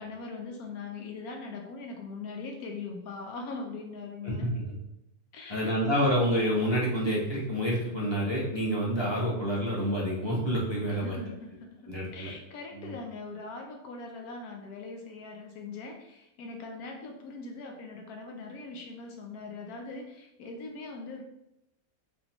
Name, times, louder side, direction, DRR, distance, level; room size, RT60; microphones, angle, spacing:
voice 1, 0.0-4.5 5.3-5.8 10.9-21.2, left 3 dB, 85° left, 3 dB, 1.1 m, -41 dB
voice 2, 4.2-4.6 5.5-11.1 11.9-12.3 12.8-12.9, equal, 20° left, -5 dB, 1.0 m, -28 dB
3.7 x 3.7 x 2.9 m, 0.85 s
omnidirectional pair, 1.5 m